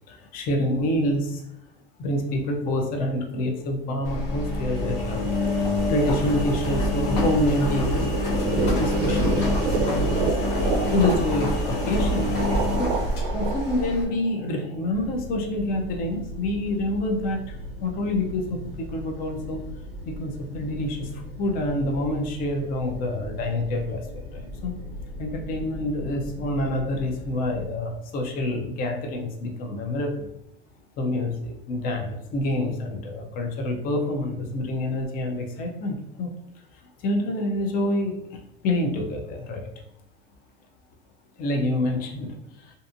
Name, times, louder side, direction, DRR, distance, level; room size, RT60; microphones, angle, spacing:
voice 1, 0.1-1.4 2.0-8.0 8.8-9.5 9.8-10.1 10.6-12.3 12.8-12.9 13.3-19.6 20.1-24.7 25.2-30.3 31.0-36.3 37.0-38.4 38.6-39.6 41.4-42.7, left 1 dB, 30° left, 3 dB, 0.5 m, -27 dB
Engine, 4.0-14.0, left 1 dB, 65° left, 1.0 m, -25 dB
sound 1, 8.1-15.0, right 4 dB, 60° right, 0.5 m, -30 dB
sound 2, 14.9-27.7, equal, 5° right, 0.9 m, -39 dB
2.5 x 2.5 x 2.5 m, 0.80 s
supercardioid pair, 125°, 29 cm